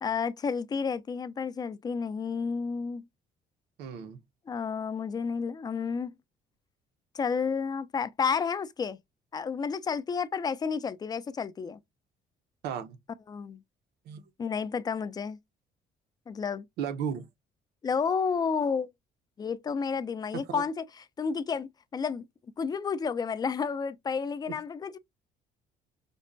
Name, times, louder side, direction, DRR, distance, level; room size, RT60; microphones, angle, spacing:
voice 1, 0.0-3.0 4.5-6.2 7.1-9.0 9.3-11.8 13.3-13.6 14.4-15.4 16.3-16.7 17.8-18.9 19.4-20.8 21.2-22.2 22.6-25.0, left 5 dB, 25° left, 0.4 m, -31 dB
voice 2, 3.8-4.2 12.6-13.0 14.1-14.3 16.8-17.3 20.5-20.6 24.5-24.6, right 7 dB, 80° right, 0.7 m, -34 dB
5.1 x 2.2 x 2.5 m
cardioid pair, 110°, 17 cm